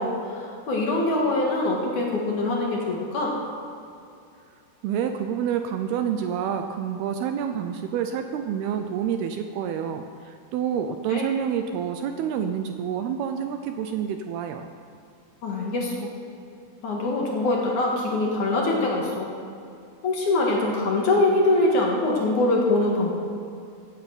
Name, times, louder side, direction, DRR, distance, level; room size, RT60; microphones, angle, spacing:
voice 1, 0.0-3.3 11.1-11.2 15.4-16.1 16.8-19.3 20.0-23.1, left 2 dB, 55° left, -2 dB, 2.8 m, -23 dB
voice 2, 4.8-14.7, right 8 dB, 80° right, 6 dB, 2.4 m, -28 dB
17.0 x 8.6 x 7.9 m, 2.5 s
omnidirectional pair, 5.0 m